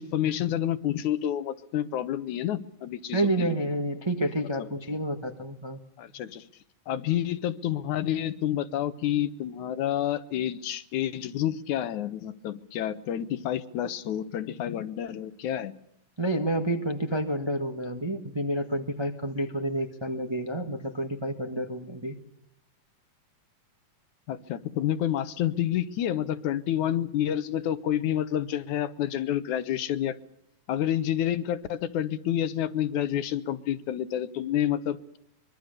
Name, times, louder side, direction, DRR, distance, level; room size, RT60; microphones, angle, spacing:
voice 1, 0.0-3.6 6.0-6.5 6.9-15.7 24.3-30.2 30.7-35.2, left 11 dB, 70° left, 13 dB, 2.3 m, -29 dB
voice 2, 3.1-5.8 16.2-22.2, right 1 dB, 25° right, 5 dB, 0.5 m, -29 dB
24.5 x 22.5 x 6.7 m, 0.75 s
omnidirectional pair, 3.7 m